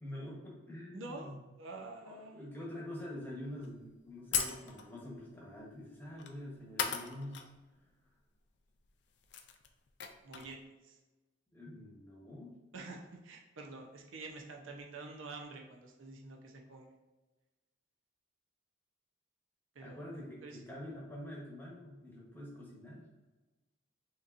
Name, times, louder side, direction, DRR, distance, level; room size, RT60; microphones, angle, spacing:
voice 1, 0.0-1.4 2.0-7.5 11.5-12.6 19.8-23.1, left 1 dB, 10° left, -4 dB, 1.0 m, -46 dB
voice 2, 0.9-2.5 10.2-11.0 12.7-16.9 19.7-20.6, right 3 dB, 85° right, 1 dB, 0.7 m, -48 dB
sound 1, 3.6-3.7 4.3-5.0 6.2-6.4 6.8-7.5 7.8-7.9 8.8-8.9 9.1-10.6, left 7 dB, 60° left, 0.4 m, -37 dB
5.6 x 2.9 x 2.5 m, 1.2 s
head